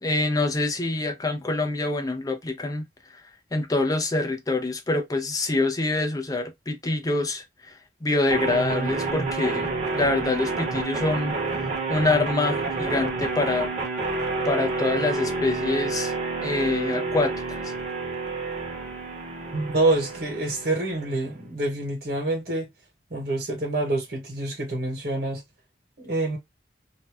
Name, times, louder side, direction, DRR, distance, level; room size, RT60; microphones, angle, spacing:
voice 1, 0.0-2.8 3.5-7.4 8.0-9.7 9.9-13.7 14.4-16.1 16.4-17.7, left 2 dB, 20° left, 0.5 m, -25 dB
sound 1, 8.3-21.3, right 3 dB, 40° right, 1.0 m, -29 dB
voice 2, 19.5-22.7 23.1-25.4 26.0-26.4, right 2 dB, 55° right, 1.3 m, -26 dB
2.7 x 2.2 x 3.3 m
head